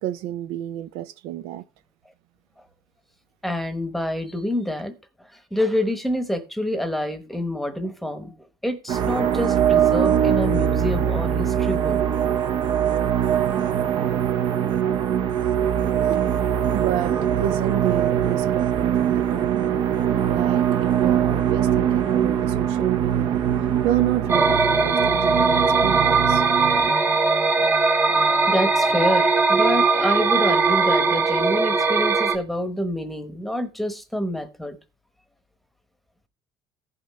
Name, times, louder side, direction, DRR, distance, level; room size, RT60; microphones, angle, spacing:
voice 1, 0.0-1.6 16.1-16.3 16.7-19.7 20.3-23.4 23.8-26.5, right 13 dB, 90° right, 0.5 m, -29 dB
voice 2, 3.4-4.9 5.2-8.3 8.6-12.0 22.4-22.5 27.0-27.2 27.6-27.7 28.1-34.7, left 1 dB, ahead, 1.0 m, -27 dB
sound 1, 8.9-26.9, right 9 dB, 50° right, 0.7 m, -22 dB
sound 2, 24.3-32.4, right 4 dB, 20° right, 0.8 m, -20 dB
15.5 x 5.8 x 3.1 m
cardioid pair, 145°, 10 cm